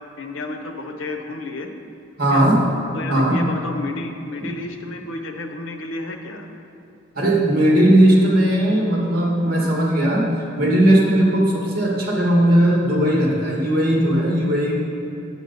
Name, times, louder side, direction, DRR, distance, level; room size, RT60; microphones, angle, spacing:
voice 1, 0.2-1.7 2.3-2.5 2.9-6.5 12.9-13.0, left 2 dB, 90° left, 5 dB, 0.8 m, -31 dB
voice 2, 2.2-2.6 3.1-3.4 4.4-4.5 7.2-10.3 10.6-14.8, right 1 dB, 50° right, -3 dB, 2.0 m, -17 dB
9.1 x 7.9 x 4.1 m, 2.7 s
head